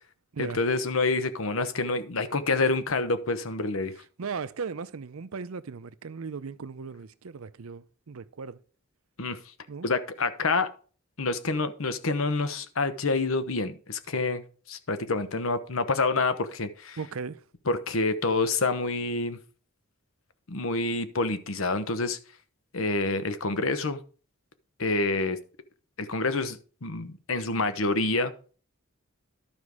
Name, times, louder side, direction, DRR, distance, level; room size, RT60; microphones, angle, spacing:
voice 1, 0.4-3.9 9.2-9.4 9.8-10.7 11.2-17.0 17.7-19.4 20.5-22.2 22.7-24.0 24.8-25.4 26.0-28.5, left 3 dB, 75° left, 1.0 m, -27 dB
voice 2, 4.2-8.6 9.7-9.9 17.0-17.4, right 5 dB, 80° right, 0.6 m, -37 dB
12.0 x 5.3 x 4.8 m
head